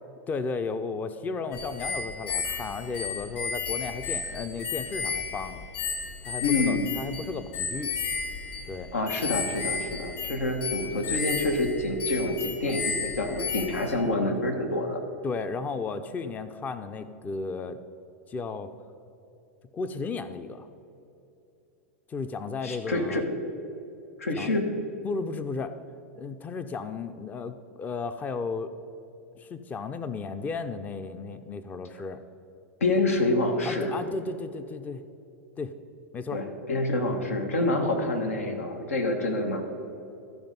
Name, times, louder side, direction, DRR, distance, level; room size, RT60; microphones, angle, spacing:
voice 1, 0.3-5.6 6.2-7.9 8.7-8.9 10.3-10.4 15.2-17.8 18.3-18.7 19.7-20.7 22.1-23.2 24.4-24.5 25.0-25.8 26.1-28.7 29.4-32.2 33.6-35.0 35.6-35.7 36.1-36.4, left 4 dB, 20° left, 11 dB, 0.5 m, -34 dB
sound 1, 1.5-14.0, left 5 dB, 50° left, 2.2 m, -33 dB
voice 2, 6.4-6.9 8.9-15.0 22.6-23.2 24.2-24.7 32.8-33.9 36.3-39.6, left 2 dB, 90° left, 5 dB, 1.2 m, -27 dB
13.5 x 5.2 x 5.2 m, 2.8 s
hypercardioid pair, 105°, 7 cm